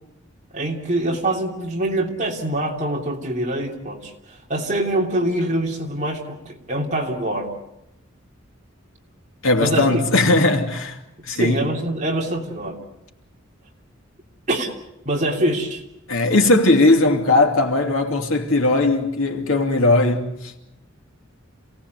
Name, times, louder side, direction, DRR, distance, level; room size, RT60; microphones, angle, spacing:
voice 1, 0.5-7.5 9.6-10.0 11.3-12.8 14.5-14.7 15.0-15.8, right 1 dB, 35° right, 3.1 m, -24 dB
voice 2, 9.4-11.7 16.1-20.6, left 2 dB, 80° left, 2.7 m, -18 dB
27.5 x 18.0 x 8.1 m
head